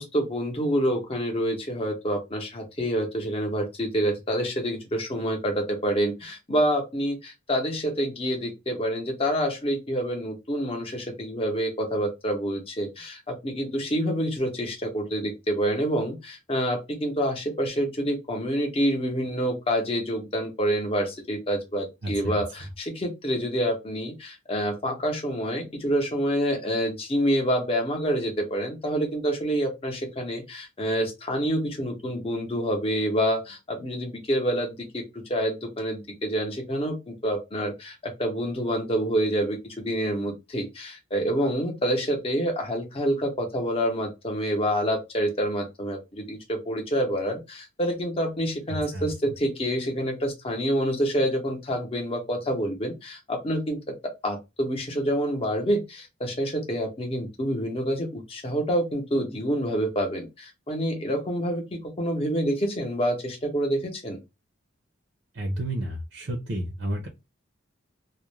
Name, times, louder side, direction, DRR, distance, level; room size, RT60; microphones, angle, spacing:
voice 1, 0.0-53.8 54.2-64.2, equal, 30° left, 2 dB, 0.7 m, -27 dB
voice 2, 22.0-22.4 48.9-49.1 65.3-67.1, right 1 dB, 65° right, 3 dB, 0.6 m, -31 dB
2.4 x 2.1 x 3.0 m, 0.24 s
head